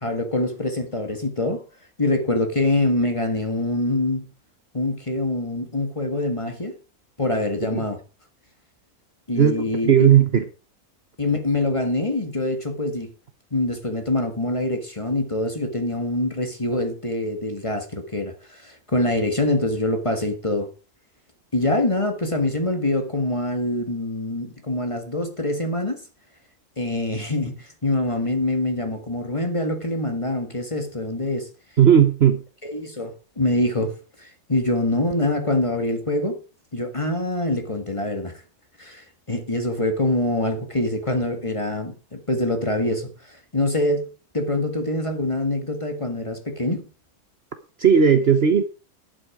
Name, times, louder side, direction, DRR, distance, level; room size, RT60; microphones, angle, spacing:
voice 1, 0.0-1.6 2.0-4.3 4.7-6.7 7.2-8.0 9.3-10.1 11.2-13.1 13.5-20.7 21.5-26.0 26.8-31.5 32.6-36.4 36.7-38.3 38.8-44.1 44.3-46.9, left 1 dB, 20° left, 1.7 m, -25 dB
voice 2, 9.4-10.4 31.8-32.4 47.8-48.6, right 8 dB, 50° right, 1.1 m, -16 dB
11.0 x 8.7 x 4.9 m
omnidirectional pair, 1.6 m